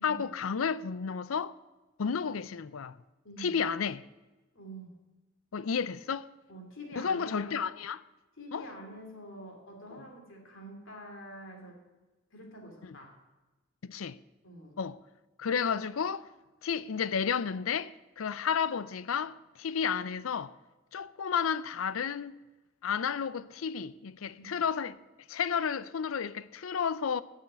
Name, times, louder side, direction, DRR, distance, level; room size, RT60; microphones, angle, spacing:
voice 1, 0.0-1.5 2.0-3.0 3.4-4.0 5.5-6.3 7.0-8.0 8.5-8.7 9.9-10.0 13.8-14.2 14.8-15.0 15.4-16.3 16.6-20.5 20.9-22.4 22.8-25.0 25.3-27.2, left 6 dB, 90° left, 0.5 m, -32 dB
voice 2, 3.2-3.5 4.5-4.9 6.5-7.6 8.4-11.8 12.3-13.1 14.4-14.8 24.4-24.6, equal, 70° left, 2.9 m, -46 dB
12.0 x 6.5 x 9.4 m
head